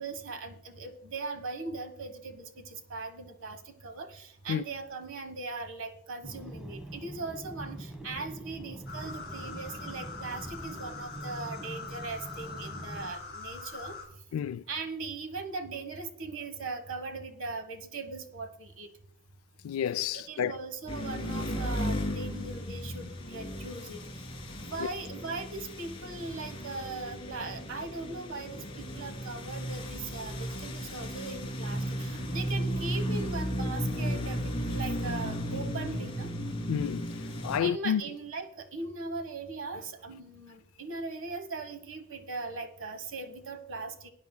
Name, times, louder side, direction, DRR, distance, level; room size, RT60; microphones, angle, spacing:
voice 1, 0.0-14.0 14.7-18.9 20.1-24.2 24.7-36.3 37.6-44.1, right 3 dB, 65° right, 1.2 m, -39 dB
sound 1, 6.2-13.2, right 1 dB, 5° right, 0.9 m, -44 dB
sound 2, 8.9-14.1, left 4 dB, 50° left, 4.1 m, -43 dB
voice 2, 14.3-14.6 19.6-20.5 24.8-24.9 36.7-37.1 37.4-38.0, left 8 dB, 75° left, 0.3 m, -30 dB
sound 3, 20.9-37.6, equal, 25° left, 2.2 m, -35 dB
20.0 x 9.5 x 2.2 m
head